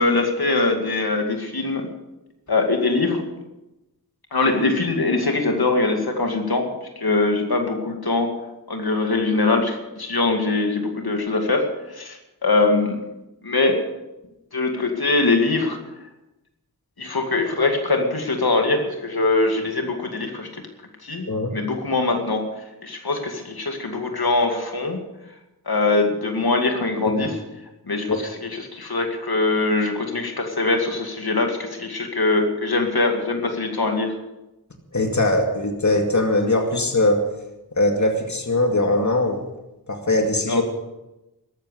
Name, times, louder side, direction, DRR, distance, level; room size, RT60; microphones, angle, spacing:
voice 1, 0.0-1.8 2.5-3.2 4.3-6.7 7.0-8.3 8.7-13.0 13.4-13.8 14.5-15.8 17.0-20.5 21.0-21.3 21.5-22.4 22.8-25.0 25.7-27.4 27.9-34.1 40.5-40.6, left 3 dB, 70° left, 3 dB, 2.3 m, -22 dB
voice 2, 34.9-37.3 37.7-39.4 39.9-40.6, left 2 dB, 45° left, 3 dB, 2.2 m, -21 dB
13.5 x 13.5 x 6.6 m, 0.97 s
wide cardioid pair, 45°, 39 cm